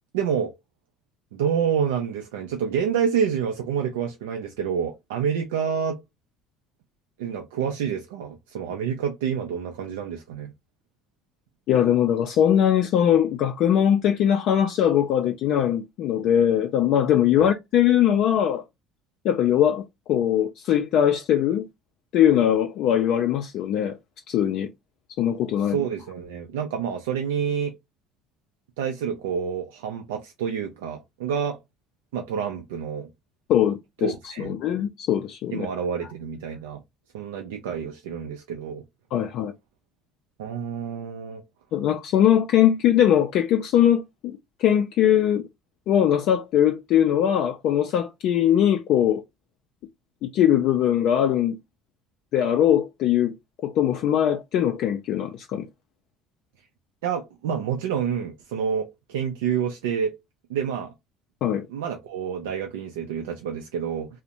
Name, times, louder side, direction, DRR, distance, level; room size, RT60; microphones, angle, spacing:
voice 1, 0.1-0.5 1.3-6.0 7.2-10.5 17.4-17.5 25.6-27.8 28.8-31.6 32.1-33.1 34.0-34.6 35.5-36.8 37.1-38.8 40.4-41.4 57.0-60.2 60.5-60.9 61.7-64.1, right 7 dB, 90° right, 0.4 m, -28 dB
voice 2, 11.7-18.6 19.2-21.7 22.1-24.0 24.3-24.7 25.2-25.8 33.5-35.7 39.1-39.5 41.7-45.5 45.9-49.2 50.2-51.6 52.3-53.3 53.6-55.7 61.4-61.7, left 10 dB, 65° left, 0.3 m, -21 dB
2.5 x 2.0 x 2.8 m
supercardioid pair, 80°, 0 cm